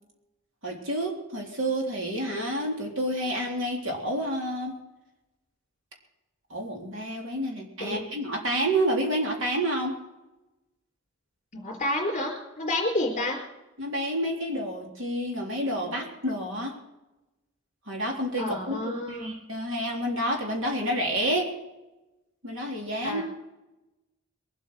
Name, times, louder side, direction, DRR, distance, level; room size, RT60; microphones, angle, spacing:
voice 1, 0.6-4.7 6.5-10.0 13.8-16.8 17.9-21.5 22.4-23.2, right 1 dB, 65° right, 0 dB, 3.7 m, -29 dB
voice 2, 11.5-13.4 18.4-19.3 23.0-23.2, left 1 dB, 35° left, 1 dB, 3.9 m, -29 dB
22.0 x 8.4 x 6.3 m, 0.98 s
head